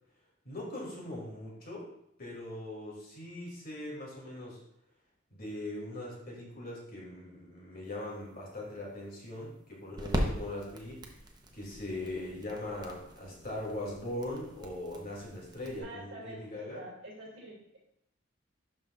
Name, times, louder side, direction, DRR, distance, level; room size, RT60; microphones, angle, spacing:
voice 1, 0.4-1.9 2.2-4.6 5.3-11.0 11.5-16.8, left 1 dB, 50° left, -3 dB, 2.7 m, -40 dB
sound 1, 7.9-15.8, equal, 20° right, 0.9 m, -40 dB
voice 2, 15.8-16.5 16.7-17.8, right 1 dB, 65° right, -1 dB, 2.6 m, -46 dB
12.0 x 5.4 x 2.4 m, 0.78 s
head